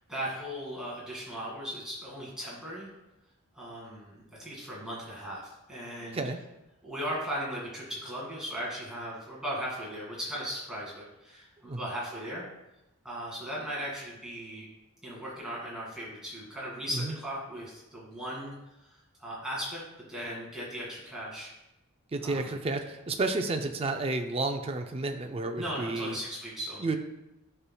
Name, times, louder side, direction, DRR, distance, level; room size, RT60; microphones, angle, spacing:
voice 1, 0.1-2.9 3.5-5.4 5.7-6.2 6.8-12.5 13.0-14.7 15.0-18.5 18.8-19.8 20.1-21.5 22.2-22.6 25.6-26.8, equal, 5° right, -6 dB, 2.0 m, -37 dB
voice 2, 22.1-26.2 26.8-27.0, right 2 dB, 25° right, 5 dB, 0.4 m, -31 dB
9.8 x 5.6 x 2.3 m, 0.95 s
head